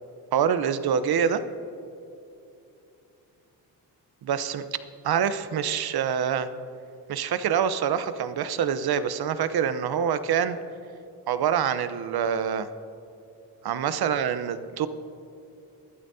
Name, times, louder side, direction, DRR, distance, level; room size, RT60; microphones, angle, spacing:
voice 1, 0.3-1.4 4.2-4.7 5.0-6.5 7.1-10.6 11.3-12.7 13.6-14.9, right 8 dB, 60° right, 12 dB, 0.9 m, -25 dB
20.5 x 12.0 x 2.8 m, 2.7 s
supercardioid pair, 60°, 43 cm